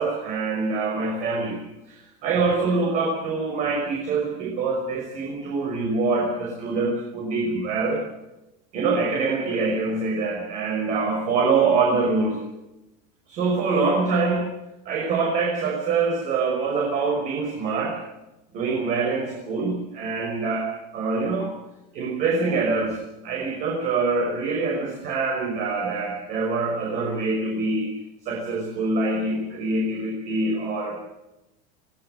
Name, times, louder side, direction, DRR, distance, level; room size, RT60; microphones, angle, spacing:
voice 1, 0.0-1.6 1.8-8.0 8.7-12.4 13.3-14.5 14.9-18.0 18.5-21.5 21.9-27.9 28.2-31.0, right 4 dB, 40° right, -1 dB, 5.8 m, -25 dB
24.0 x 17.0 x 8.0 m, 0.95 s
cardioid pair, 170°, 19 cm